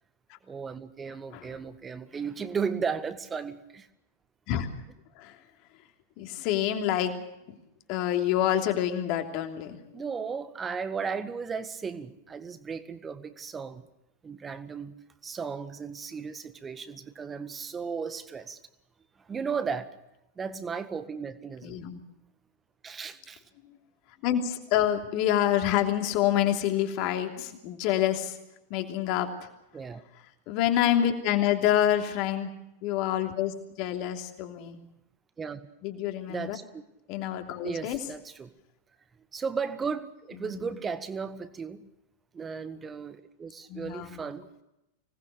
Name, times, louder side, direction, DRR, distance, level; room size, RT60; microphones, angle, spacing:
voice 1, 0.5-3.9 9.9-13.8 14.2-14.9 15.2-18.6 19.3-19.9 20.4-21.8 22.8-23.4 29.7-30.0 35.4-35.6 36.3-36.8 37.6-38.5 39.3-41.9 42.3-44.4, right 5 dB, 20° right, 12 dB, 1.7 m, -35 dB
voice 2, 6.2-7.1 7.5-7.6 7.9-10.0 21.6-22.0 24.2-28.4 28.7-29.5 30.5-32.5 32.8-34.8 35.8-36.6 37.1-38.0 40.4-40.7 43.7-44.2, left 11 dB, 45° left, 5 dB, 3.1 m, -27 dB
25.5 x 19.5 x 6.8 m, 0.89 s
figure-of-eight pair, 90°, 0 cm